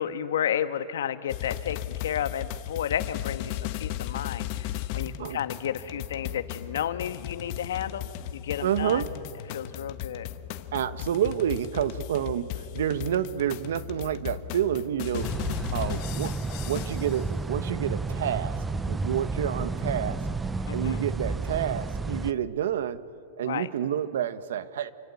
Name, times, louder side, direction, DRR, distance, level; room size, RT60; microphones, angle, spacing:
voice 1, 0.0-9.0 9.5-10.3 20.7-21.0 23.4-23.7, left 9 dB, 85° left, 11 dB, 1.5 m, -32 dB
sound 1, 1.3-17.2, left 12 dB, 40° left, 1.2 m, -36 dB
voice 2, 5.0-5.4 8.6-9.1 10.7-15.3 15.7-16.4 16.6-20.2 20.7-23.0 23.4-24.9, right 10 dB, 75° right, 14 dB, 1.3 m, -29 dB
sound 2, 15.2-22.3, right 3 dB, 10° right, 0.6 m, -31 dB
27.5 x 25.5 x 8.4 m, 2.7 s
supercardioid pair, 160°, 0 cm